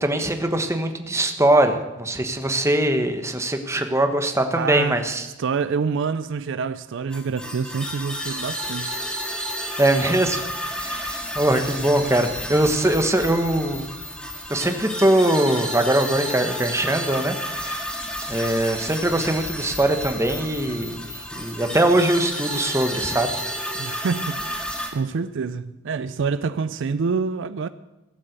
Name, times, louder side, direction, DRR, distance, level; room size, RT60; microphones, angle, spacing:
voice 1, 0.0-5.3 9.8-10.4 10.8-13.9 14.5-17.8 18.3-23.3, right 1 dB, 15° right, 1.2 m, -22 dB
voice 2, 4.5-5.0 5.4-9.0 10.9-11.1 23.7-27.7, right 5 dB, 65° right, 0.4 m, -27 dB
sound 1, 7.1-24.9, equal, 5° left, 2.0 m, -31 dB
17.0 x 7.5 x 8.0 m
head